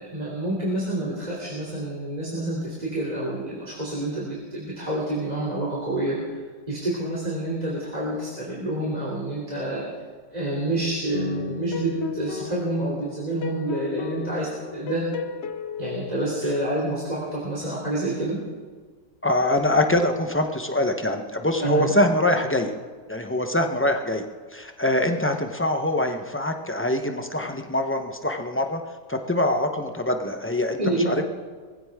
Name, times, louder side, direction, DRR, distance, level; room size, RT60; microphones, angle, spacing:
voice 1, 0.0-9.9 10.3-15.1 15.8-18.4 21.6-22.0 30.8-31.2, right 1 dB, 20° right, -6 dB, 3.0 m, -28 dB
sound 1, 11.1-16.4, left 6 dB, 60° left, 0.7 m, -34 dB
voice 2, 19.2-22.7 23.1-24.2 24.5-28.8 29.1-31.2, left 1 dB, 15° left, 5 dB, 0.5 m, -24 dB
21.5 x 15.5 x 3.6 m, 1.5 s
omnidirectional pair, 1.8 m